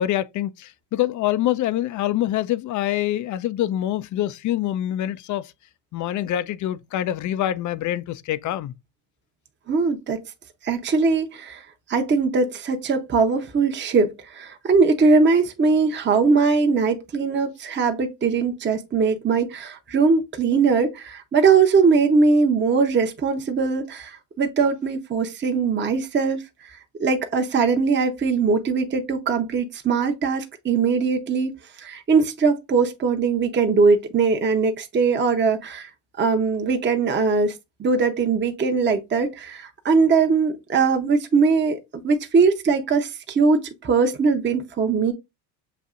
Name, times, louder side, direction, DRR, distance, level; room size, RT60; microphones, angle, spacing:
voice 1, 0.0-5.5 5.9-8.7, left 13 dB, 40° left, 0.4 m, -25 dB
voice 2, 9.7-10.2 10.6-11.6 11.9-26.4 27.0-31.5 31.8-35.9 36.2-37.5 37.8-41.8 42.0-45.1, right 4 dB, 25° right, 0.8 m, -21 dB
6.9 x 2.6 x 2.4 m
supercardioid pair, 80°, 47 cm